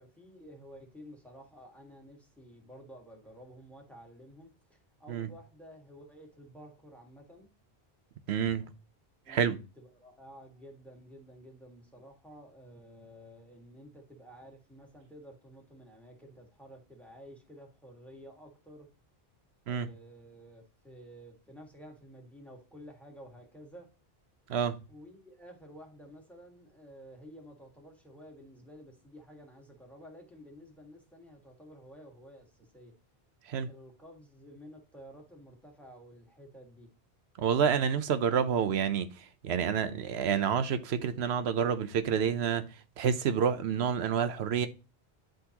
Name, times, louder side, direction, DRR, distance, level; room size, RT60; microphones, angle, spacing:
voice 1, 0.0-7.5 9.2-18.9 19.6-23.9 24.9-32.9 33.6-36.9, equal, ahead, 1.6 m, -52 dB
voice 2, 8.3-8.7 9.3-9.6 19.7-19.9 24.5-24.8 33.4-33.7 37.4-44.7, right 7 dB, 80° right, 0.9 m, -29 dB
10.0 x 3.8 x 2.9 m
omnidirectional pair, 1.1 m